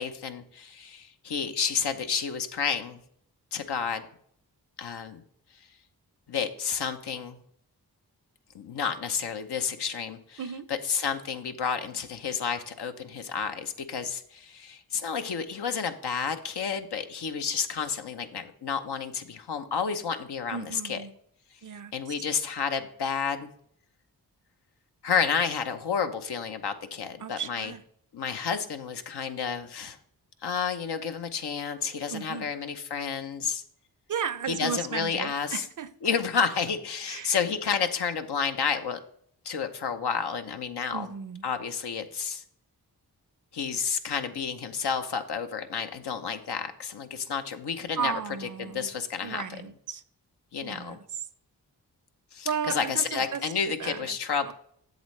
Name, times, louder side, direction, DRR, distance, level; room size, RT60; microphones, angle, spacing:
voice 1, 0.0-3.0 3.5-4.0 4.8-5.2 6.3-7.4 8.5-10.4 10.9-21.0 21.9-23.5 25.0-27.7 28.1-30.0 30.4-33.6 34.6-35.6 36.0-39.0 39.4-41.1 41.4-42.4 43.5-48.1 48.6-49.4 50.5-51.0 52.3-54.5, left 6 dB, 75° left, 0.8 m, -30 dB
voice 2, 20.5-21.1 21.6-21.9 27.2-27.8 32.1-32.5 34.1-36.1 37.1-37.4 40.9-41.4 48.0-48.9 49.2-50.0 50.6-51.3 52.4-54.2 54.4-54.5, right 7 dB, 50° right, 0.6 m, -35 dB
7.9 x 7.2 x 3.2 m
cardioid pair, 40°, 41 cm